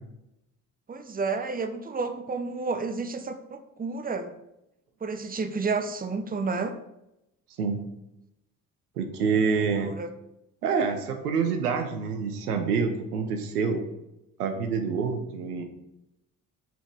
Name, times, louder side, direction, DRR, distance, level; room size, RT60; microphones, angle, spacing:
voice 1, 0.9-4.3 5.0-6.8 9.8-10.1, right 4 dB, 20° right, 9 dB, 0.9 m, -31 dB
voice 2, 9.0-9.9 10.6-13.8 14.4-15.6, right 5 dB, 80° right, 6 dB, 0.8 m, -27 dB
6.3 x 5.1 x 4.8 m, 0.86 s
figure-of-eight pair, 40°, 45 cm